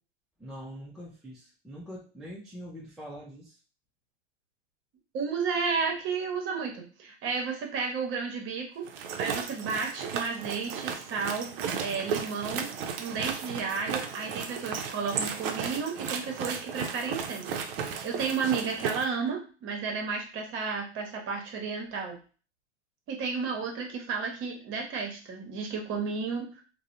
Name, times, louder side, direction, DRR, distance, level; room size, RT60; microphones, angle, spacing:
voice 1, 0.4-3.5, equal, ahead, -5 dB, 0.3 m, -43 dB
voice 2, 5.1-8.8 9.2-11.5 11.8-12.7 13.0-22.2 23.1-26.6, right 5 dB, 35° right, 2 dB, 0.8 m, -32 dB
sound 1, 8.8-19.1, right 6 dB, 55° right, 0.5 m, -35 dB
2.6 x 2.1 x 2.5 m, 0.37 s
hypercardioid pair, 110°, 34 cm